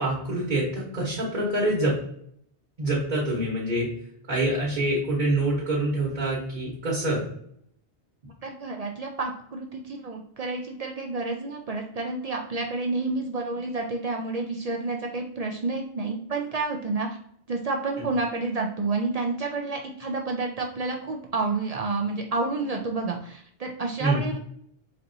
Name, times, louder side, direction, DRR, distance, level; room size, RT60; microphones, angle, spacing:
voice 1, 0.0-2.0 2.8-3.9 4.3-7.2 24.0-24.2, right 1 dB, 40° right, -7 dB, 1.3 m, -25 dB
voice 2, 8.4-17.1 17.5-24.4, right 3 dB, 65° right, 1 dB, 0.3 m, -29 dB
4.3 x 2.6 x 2.6 m, 0.68 s
omnidirectional pair, 1.2 m